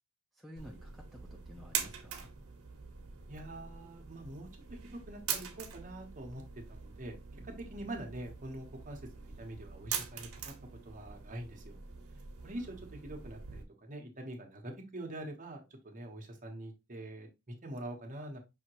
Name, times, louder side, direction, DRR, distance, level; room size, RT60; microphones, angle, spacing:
voice 1, 0.3-2.3 7.3-7.5, equal, ahead, 0 dB, 0.6 m, -52 dB
sound 1, 0.6-13.6, right 7 dB, 80° right, 0.9 m, -43 dB
voice 2, 3.3-6.4 6.8-7.1 7.4-10.5 10.8-11.8 12.4-18.4, right 1 dB, 35° right, 2 dB, 1.1 m, -45 dB
5.6 x 2.9 x 3.0 m, 0.25 s
head